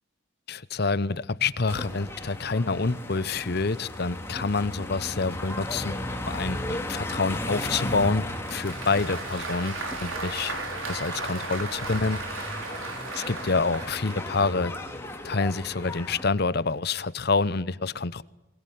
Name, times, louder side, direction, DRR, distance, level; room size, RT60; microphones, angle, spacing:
voice 1, 0.5-6.0 6.3-10.6 10.9-12.2 13.1-14.7 15.2-18.2, left 4 dB, 50° left, 0.8 m, -27 dB
sound 1, 1.7-16.3, left 1 dB, 10° left, 2.7 m, -35 dB
Applause, 8.3-14.3, right 3 dB, 80° right, 4.9 m, -36 dB
21.5 x 21.0 x 9.4 m
head